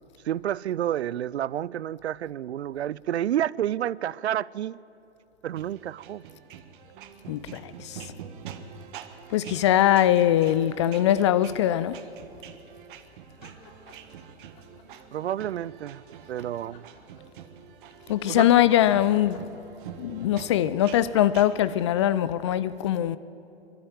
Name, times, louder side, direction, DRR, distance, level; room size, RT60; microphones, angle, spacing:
voice 1, 0.2-4.8 5.4-6.2 15.1-16.0 16.3-16.9 18.3-18.5, right 11 dB, 70° right, 0.5 m, -29 dB
sound 1, 5.6-21.8, right 8 dB, 50° right, 1.5 m, -45 dB
voice 2, 7.3-8.0 9.3-12.0 18.1-19.4 20.0-23.2, left 12 dB, 25° left, 0.4 m, -22 dB
sound 2, 13.3-14.2 14.5-15.5 16.5-17.7 18.7-20.0 21.1-21.4, left 4 dB, 45° left, 4.1 m, -52 dB
23.0 x 12.5 x 9.2 m
hypercardioid pair, 120°, 34 cm